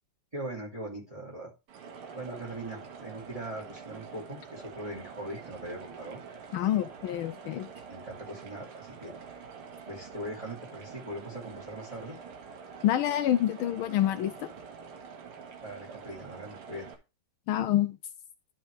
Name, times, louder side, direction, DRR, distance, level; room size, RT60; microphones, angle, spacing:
voice 1, 0.3-1.5 2.1-6.2 6.6-6.8 7.9-9.4 9.9-12.2 15.6-16.9, right 1 dB, 15° right, 2.6 m, -41 dB
sound 1, 1.7-16.9, right 5 dB, 80° right, 2.2 m, -46 dB
voice 2, 6.5-7.7 12.8-14.5 17.5-18.0, left 12 dB, 75° left, 1.4 m, -27 dB
11.5 x 4.5 x 3.3 m
omnidirectional pair, 2.4 m